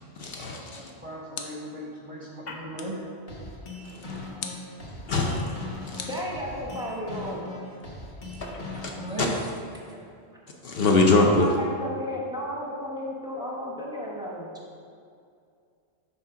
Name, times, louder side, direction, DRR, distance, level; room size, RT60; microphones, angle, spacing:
voice 1, 0.2-0.9 4.0-4.1 5.1-6.1 8.4-8.9 10.6-11.5, left 2 dB, 60° left, 0 dB, 0.8 m, -24 dB
voice 2, 0.7-3.0 8.9-9.4, right 1 dB, 35° right, -3 dB, 0.7 m, -37 dB
sound 1, 1.3-1.9 2.8-3.1 4.4-4.8 6.0-6.9, left 6 dB, 90° left, 1.0 m, -41 dB
sound 2, 3.3-9.3, left 2 dB, 40° left, 1.2 m, -39 dB
voice 3, 6.1-7.4 9.0-9.5 9.8-10.0 11.4-14.6, left 1 dB, 5° right, -4 dB, 0.9 m, -34 dB
6.1 x 4.0 x 5.7 m, 2.4 s
omnidirectional pair, 1.2 m